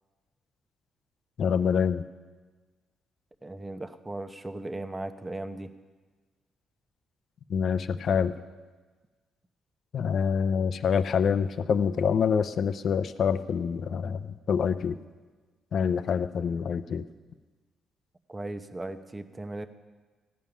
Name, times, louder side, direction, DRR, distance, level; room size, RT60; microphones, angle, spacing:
voice 1, 1.4-2.0 7.5-8.3 9.9-15.0 15.7-17.0, left 7 dB, 60° left, 12 dB, 0.6 m, -26 dB
voice 2, 3.4-5.7 18.3-19.7, right 2 dB, 15° right, 9 dB, 0.9 m, -37 dB
16.0 x 5.5 x 10.0 m, 1.4 s
cardioid pair, 90°, 0 cm